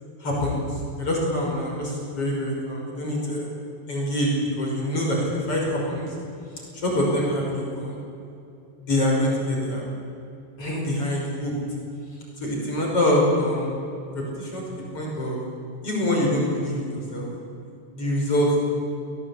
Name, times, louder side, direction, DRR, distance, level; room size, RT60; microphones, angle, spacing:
voice 1, 0.2-3.5 3.9-6.1 6.8-8.0 8.8-9.9 10.6-11.5 12.4-13.7 14.1-14.6 14.9-15.4 15.8-17.3 17.9-18.6, left 1 dB, 40° left, -2 dB, 6.5 m, -25 dB
28.0 x 19.0 x 8.7 m, 2.7 s
omnidirectional pair, 4.1 m